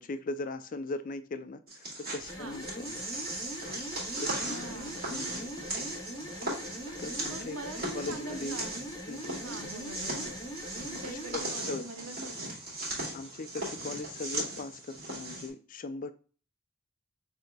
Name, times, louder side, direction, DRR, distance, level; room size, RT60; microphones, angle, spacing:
voice 1, 0.0-3.0 3.6-3.8 4.2-5.5 7.0-7.6 7.9-8.6 9.1-9.5 11.0-11.4 11.7-11.8 13.1-16.1, left 3 dB, 40° left, 0.4 m, -39 dB
sound 1, 1.7-15.5, right 2 dB, 45° right, 2.3 m, -38 dB
sound 2, 2.2-11.4, equal, 20° left, 0.9 m, -42 dB
voice 2, 4.1-5.0 7.3-8.8 9.4-10.3 10.8-12.6, right 2 dB, 75° right, 0.8 m, -44 dB
6.4 x 2.8 x 2.3 m
head